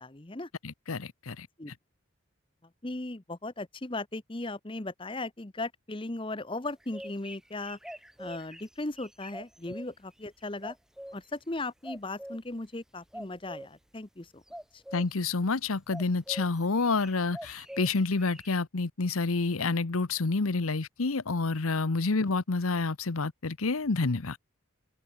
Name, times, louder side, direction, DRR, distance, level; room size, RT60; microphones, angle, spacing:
voice 1, 0.0-0.5 1.6-1.7 2.8-7.8 8.2-10.8 11.1-14.4 14.7-14.8, left 2 dB, 25° left, 0.9 m, -37 dB
voice 2, 0.6-1.5 14.9-24.4, left 3 dB, 90° left, 1.0 m, -28 dB
sound 1, 6.7-9.9 10.6-11.3 11.8-12.4 13.1-13.7 14.5-15.1 15.9-16.5 16.7-18.5, equal, ahead, 1.0 m, -44 dB
head